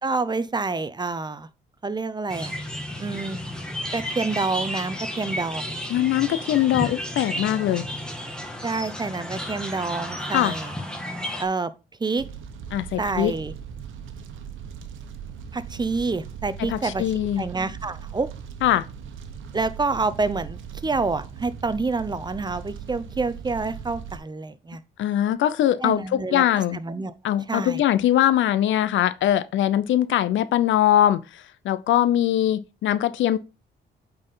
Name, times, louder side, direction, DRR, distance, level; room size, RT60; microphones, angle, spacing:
voice 1, 0.0-1.5 1.8-2.5 3.0-3.4 3.9-5.8 8.6-10.7 11.4-11.7 12.0-12.3 13.0-13.5 15.5-17.0 17.4-18.3 19.5-24.8 25.8-26.4 26.7-27.1 27.5-27.8, right 3 dB, 20° right, 0.7 m, -27 dB
sound 1, 2.3-11.5, equal, 5° left, 1.8 m, -32 dB
voice 2, 5.9-7.9 10.3-10.5 12.7-13.3 16.7-17.4 18.6-18.9 25.0-26.8 27.2-33.4, left 12 dB, 75° left, 0.6 m, -22 dB
Fire, 12.2-24.2, right 7 dB, 80° right, 1.1 m, -39 dB
8.7 x 4.3 x 3.9 m
cardioid pair, 90°, 20 cm